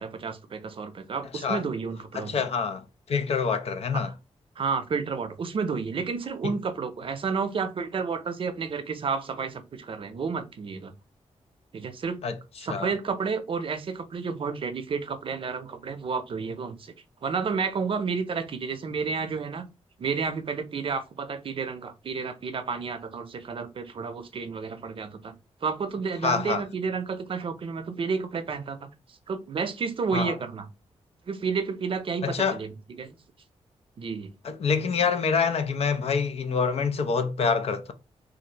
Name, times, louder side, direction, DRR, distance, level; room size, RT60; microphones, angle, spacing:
voice 1, 0.0-2.4 3.9-4.0 4.6-10.9 11.7-12.2 12.6-16.9 17.2-19.7 20.0-25.3 25.6-28.9 29.3-30.6 31.3-32.7 33.0-33.2 34.0-34.3, right 5 dB, 50° right, 0.6 m, -31 dB
voice 2, 2.1-4.1 12.2-12.4 12.7-12.9 26.2-26.6 30.1-30.3 32.2-32.6 34.4-37.9, left 5 dB, 60° left, 0.5 m, -26 dB
3.3 x 2.5 x 2.8 m
wide cardioid pair, 120°, 12 cm